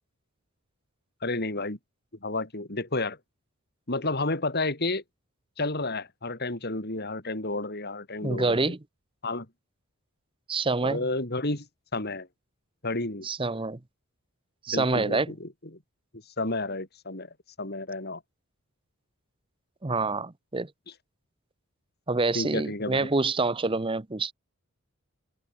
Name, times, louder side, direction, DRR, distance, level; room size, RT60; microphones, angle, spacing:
voice 1, 1.2-1.8 2.2-3.2 3.9-5.0 5.6-8.7 9.2-9.5 10.8-11.7 11.9-12.3 12.8-13.3 14.7-15.5 16.1-17.3 17.6-18.2 22.3-23.1, left 2 dB, 45° left, 3.6 m, -31 dB
voice 2, 8.2-8.8 10.5-11.1 13.2-13.8 14.6-15.3 19.8-20.7 22.1-24.3, right 3 dB, 25° right, 0.8 m, -27 dB
open air
head